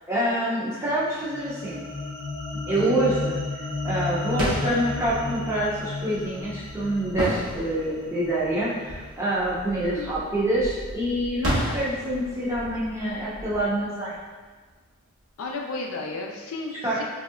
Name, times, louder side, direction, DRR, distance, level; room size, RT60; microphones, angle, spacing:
voice 1, 0.1-1.8 2.7-3.4 3.8-14.1 16.8-17.0, right 1 dB, 10° right, -8 dB, 0.6 m, -26 dB
sound 1, 0.9-9.3, left 3 dB, 45° left, 0.7 m, -34 dB
voice 2, 2.7-3.1 9.8-10.2 11.4-11.9 15.4-17.0, left 3 dB, 65° left, 0 dB, 0.4 m, -34 dB
sound 2, 4.3-14.9, right 1 dB, 70° right, 1.2 m, -34 dB
3.1 x 2.7 x 2.4 m, 1.4 s
head